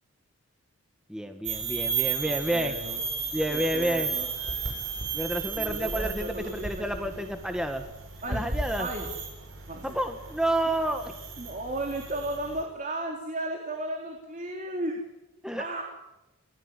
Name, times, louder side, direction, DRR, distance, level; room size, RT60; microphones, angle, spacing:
voice 1, 1.1-2.7 3.3-4.1 5.1-7.8 8.3-8.9 9.8-11.1 15.4-15.7, right 1 dB, 5° right, 6 dB, 1.6 m, -29 dB
sound 1, 1.4-12.6, right 5 dB, 60° right, 7.9 m, -34 dB
voice 2, 2.3-3.0 3.5-4.3 5.6-7.3 8.2-8.4 8.8-9.1 9.7-10.0 10.7-10.9 11.4-15.0 15.5-15.8, right 1 dB, 35° right, 2 dB, 3.7 m, -35 dB
29.0 x 19.0 x 9.8 m, 1.0 s
head